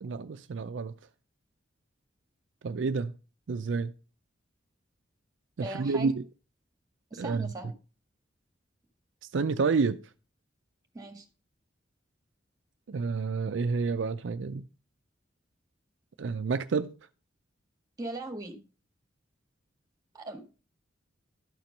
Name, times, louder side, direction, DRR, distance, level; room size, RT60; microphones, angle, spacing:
voice 1, 0.0-0.9 2.6-3.1 3.5-3.9 5.6-6.2 7.2-7.5 9.3-10.0 12.9-14.6 16.2-17.0, right 4 dB, 70° right, 0.4 m, -29 dB
voice 2, 5.6-6.1 7.1-7.7 10.9-11.2 18.0-18.6 20.1-20.4, right 2 dB, 20° right, 1.7 m, -38 dB
12.5 x 4.4 x 5.2 m
head